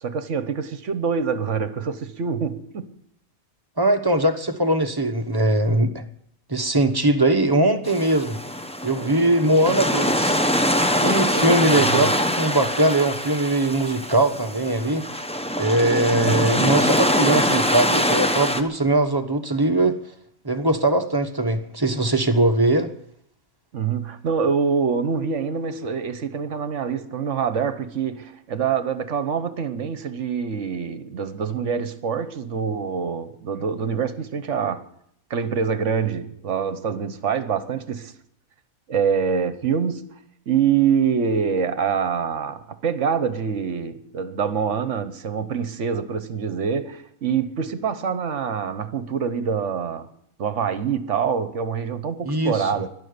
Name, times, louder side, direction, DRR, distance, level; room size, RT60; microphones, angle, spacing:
voice 1, 0.0-3.0 11.3-12.1 16.1-16.7 23.7-34.8 35.3-38.1 38.9-40.1 40.5-50.1 50.4-52.9, right 6 dB, 60° right, 1.3 m, -25 dB
voice 2, 3.8-6.0 6.5-8.4 8.8-10.4 11.0-15.1 15.6-20.0 20.4-22.9 52.2-52.7, right 1 dB, 20° right, 1.0 m, -21 dB
sound 1, 7.9-18.6, equal, 5° left, 0.6 m, -23 dB
12.0 x 11.5 x 9.5 m
omnidirectional pair, 1.5 m